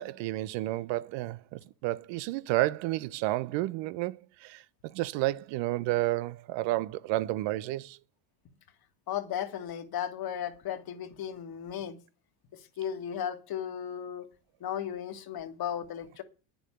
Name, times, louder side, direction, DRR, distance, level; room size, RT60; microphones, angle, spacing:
voice 1, 0.0-8.0, right 17 dB, 65° right, 0.9 m, -31 dB
voice 2, 9.1-12.0 12.8-14.3 14.6-16.2, left 9 dB, 50° left, 1.9 m, -35 dB
9.5 x 7.2 x 8.6 m
supercardioid pair, 90°, 48 cm